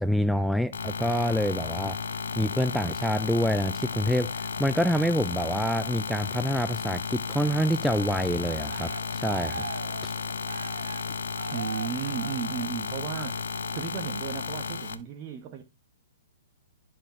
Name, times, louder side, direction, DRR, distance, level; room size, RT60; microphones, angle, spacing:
voice 1, 0.0-2.0 2.3-9.7 10.0-10.1, equal, ahead, 0.4 m, -27 dB
sound 1, 0.7-14.9, left 6 dB, 70° left, 1.1 m, -33 dB
Cheering, 7.8-13.0 13.5-13.9, right 5 dB, 75° right, 1.0 m, -41 dB
voice 2, 11.5-15.6, right 8 dB, 35° right, 1.2 m, -35 dB
11.5 x 4.7 x 4.8 m
hypercardioid pair, 120°, 0 cm